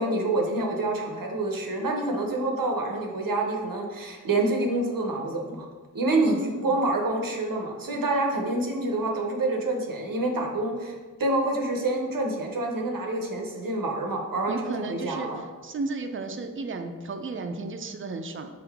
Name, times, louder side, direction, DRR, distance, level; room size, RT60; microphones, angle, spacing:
voice 1, 0.0-5.7 5.9-15.4, right 2 dB, 80° right, 1 dB, 0.7 m, -27 dB
voice 2, 6.3-6.7 14.5-15.3 15.6-18.5, right 3 dB, 40° right, 6 dB, 0.4 m, -33 dB
3.7 x 3.7 x 3.4 m, 1.4 s
wide cardioid pair, 45°, 33 cm